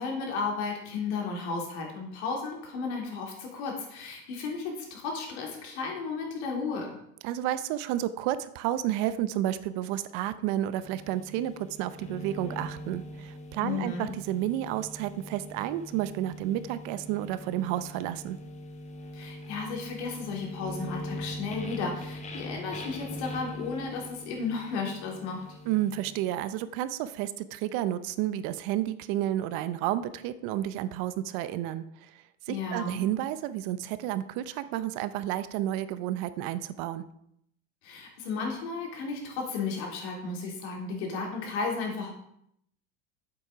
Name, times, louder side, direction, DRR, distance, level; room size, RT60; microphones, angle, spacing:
voice 1, 0.0-7.0 13.6-14.1 19.1-25.4 32.5-33.0 37.8-42.2, left 4 dB, 80° left, 1 dB, 3.3 m, -34 dB
voice 2, 7.2-18.4 25.6-31.8 32.5-37.0, right 12 dB, 65° right, 14 dB, 0.8 m, -31 dB
sound 1, 10.8-26.2, equal, 20° left, 1.3 m, -42 dB
8.4 x 7.9 x 5.0 m, 0.74 s
supercardioid pair, 135°, 33 cm